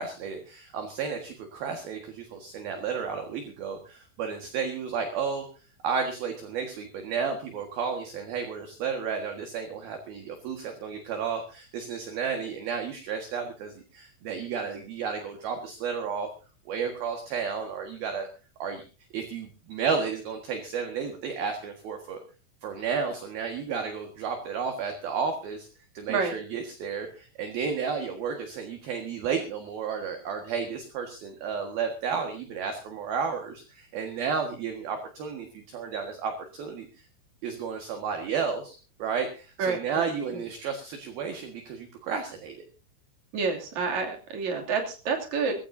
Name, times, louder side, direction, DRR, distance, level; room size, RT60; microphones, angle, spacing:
voice 1, 0.0-5.5 5.8-16.3 16.7-18.3 18.6-18.8 19.1-22.2 22.6-25.7 25.9-37.0 37.4-42.7, right 6 dB, 60° right, 4 dB, 3.0 m, -32 dB
voice 2, 39.6-40.4 43.3-45.6, right 5 dB, 40° right, 2 dB, 3.4 m, -29 dB
22.5 x 15.5 x 2.7 m, 0.33 s
omnidirectional pair, 5.8 m